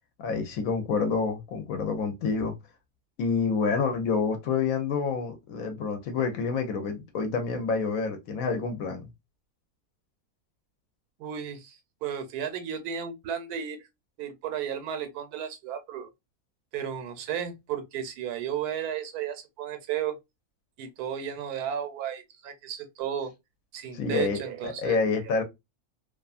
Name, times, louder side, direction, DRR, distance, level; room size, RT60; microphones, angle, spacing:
voice 1, 0.2-2.5 3.2-9.1 23.9-25.4, left 5 dB, 70° left, 1.0 m, -28 dB
voice 2, 11.2-13.9 14.2-16.1 16.7-20.2 20.8-23.3 23.7-25.0, right 9 dB, 80° right, 1.1 m, -34 dB
2.7 x 2.4 x 2.4 m
omnidirectional pair, 1.6 m